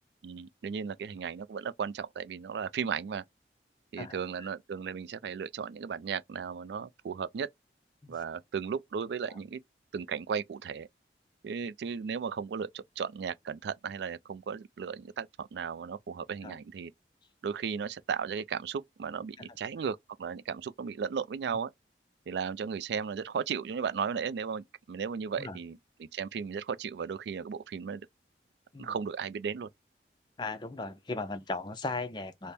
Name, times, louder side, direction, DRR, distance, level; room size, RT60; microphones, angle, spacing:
voice 1, 0.2-3.2 3.9-7.5 8.1-9.6 9.9-10.9 11.4-16.9 17.4-21.7 22.3-28.1 28.8-29.7, right 6 dB, 75° right, 0.3 m, -35 dB
voice 2, 30.4-32.5, left 3 dB, 25° left, 0.5 m, -37 dB
3.4 x 2.1 x 4.1 m
head